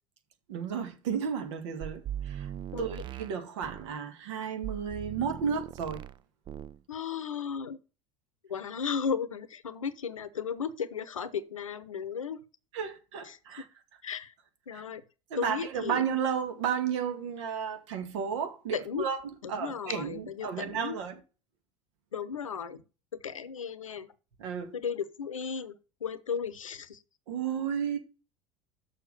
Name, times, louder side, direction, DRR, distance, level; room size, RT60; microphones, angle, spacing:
voice 1, 0.5-2.5 2.8-6.0 12.7-13.7 14.7-14.8 15.3-19.2 19.5-21.2 24.4-24.7 27.3-28.0, right 7 dB, 60° right, 2.1 m, -33 dB
sound 1, 1.8-4.0 4.6-6.2 6.5-6.8, right 11 dB, 30° right, 0.4 m, -40 dB
voice 2, 2.7-3.0 6.9-7.8 8.5-12.4 13.2-13.4 14.0-14.3 14.7-15.0 15.4-16.0 18.7-19.1 19.4-21.0 22.1-22.8 23.1-24.1 24.7-25.7 26.0-27.0, left 6 dB, 80° left, 0.8 m, -35 dB
6.7 x 6.2 x 6.5 m
figure-of-eight pair, 75°, 17 cm